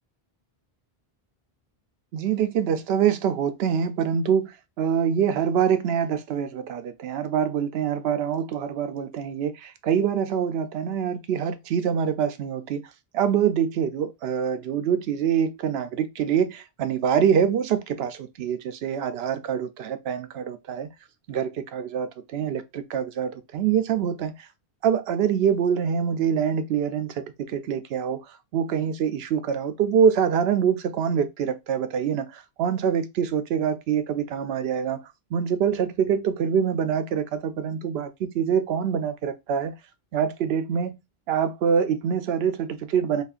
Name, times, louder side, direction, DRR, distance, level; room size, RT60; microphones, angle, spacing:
voice 1, 2.1-4.5 4.8-12.8 13.1-20.9 21.3-24.3 24.8-28.2 28.5-35.0 35.3-39.7 40.1-40.9 41.3-43.2, right 8 dB, 75° right, 0.8 m, -25 dB
4.2 x 2.9 x 2.4 m
omnidirectional pair, 1.1 m